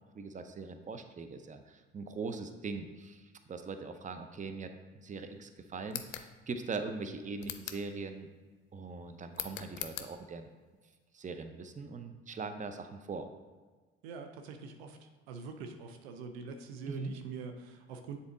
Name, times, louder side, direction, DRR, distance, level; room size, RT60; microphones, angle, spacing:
voice 1, 0.1-8.3 8.7-10.5 11.1-13.3 16.9-17.1, right 4 dB, 25° right, 7 dB, 0.7 m, -41 dB
sound 1, 5.9-6.3 7.4-7.9 9.3-10.1, left 12 dB, 75° left, 0.5 m, -41 dB
voice 2, 14.0-18.2, right 5 dB, 85° right, 6 dB, 0.6 m, -44 dB
7.2 x 4.0 x 3.8 m, 1.4 s
hypercardioid pair, 60°, 30 cm